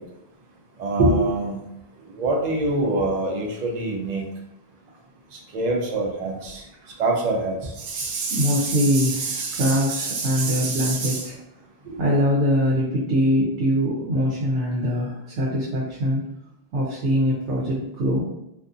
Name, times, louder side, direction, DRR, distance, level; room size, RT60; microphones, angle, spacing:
voice 1, 0.8-1.6 2.2-4.2 5.5-6.6 7.0-11.3 11.9-12.0, right 2 dB, 50° right, 0 dB, 0.6 m, -25 dB
voice 2, 8.3-11.4 12.0-16.2 16.7-18.2, equal, 85° right, -4 dB, 0.9 m, -23 dB
2.5 x 2.4 x 2.4 m, 0.87 s
omnidirectional pair, 1.1 m